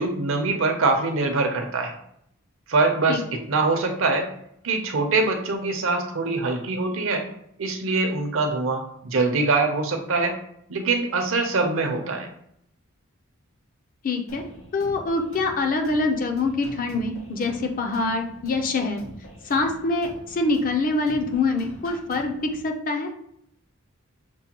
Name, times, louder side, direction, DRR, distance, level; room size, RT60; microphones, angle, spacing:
voice 1, 0.0-1.9 2.7-3.2 3.5-4.3 4.6-7.2 7.6-10.4 10.7-12.3, right 3 dB, 65° right, 4 dB, 0.6 m, -23 dB
voice 2, 14.0-14.4 14.7-19.0 19.4-23.1, left 3 dB, 40° left, 5 dB, 0.5 m, -25 dB
sound 1, 14.3-22.6, equal, 70° left, 1.3 m, -45 dB
6.1 x 2.2 x 2.9 m, 0.72 s
head